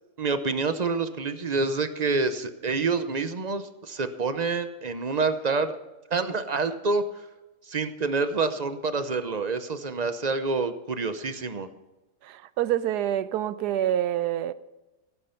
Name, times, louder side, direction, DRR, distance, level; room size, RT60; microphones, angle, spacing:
voice 1, 0.2-5.8 6.1-7.0 7.7-11.7, right 4 dB, 40° right, 10 dB, 0.6 m, -27 dB
voice 2, 12.2-14.5, right 11 dB, 85° right, 15 dB, 1.2 m, -27 dB
17.0 x 8.8 x 5.7 m, 1.0 s
omnidirectional pair, 1.7 m